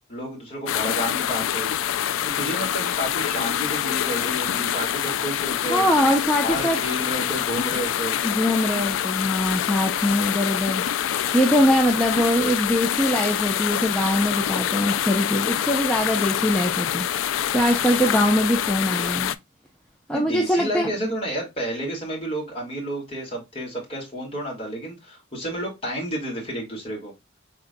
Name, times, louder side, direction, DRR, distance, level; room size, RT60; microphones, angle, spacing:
voice 1, 0.1-1.7 2.2-5.9 6.4-8.2 20.1-27.1, right 1 dB, 30° left, 1.8 m, -31 dB
sound 1, 0.7-19.3, left 10 dB, 90° left, 0.3 m, -26 dB
voice 2, 5.7-6.8 8.2-10.8 11.3-17.1 17.5-19.3 20.1-20.9, equal, 5° left, 0.6 m, -22 dB
5.0 x 3.7 x 2.2 m
head